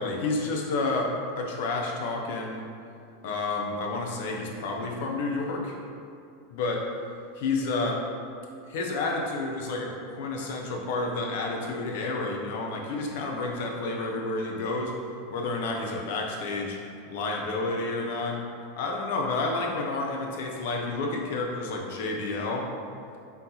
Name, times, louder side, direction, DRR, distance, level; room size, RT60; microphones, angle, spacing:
voice 1, 0.0-2.6 3.2-5.7 6.6-6.8 7.4-8.0 8.7-14.9 15.3-16.8 17.1-18.4 18.8-22.6, left 3 dB, 65° left, 0 dB, 0.6 m, -30 dB
4.0 x 3.6 x 2.8 m, 2.5 s
hypercardioid pair, 90°, 0 cm